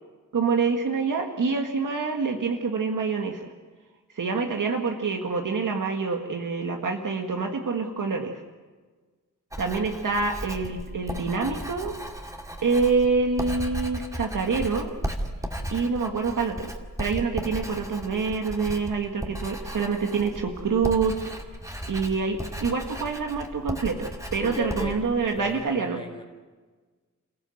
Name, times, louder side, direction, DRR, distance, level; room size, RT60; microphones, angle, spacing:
voice 1, 0.3-3.5 4.2-8.4 9.6-11.9 12.6-14.9 15.7-16.7 17.0-21.1 21.9-26.0, right 4 dB, 85° right, 3 dB, 1.8 m, -26 dB
Writing, 9.5-25.6, right 1 dB, 10° right, 2.2 m, -36 dB
voice 2, 24.4-25.0 25.4-26.2, left 1 dB, 15° left, 1 dB, 3.9 m, -36 dB
29.0 x 15.5 x 7.8 m, 1.4 s
wide cardioid pair, 110°, 31 cm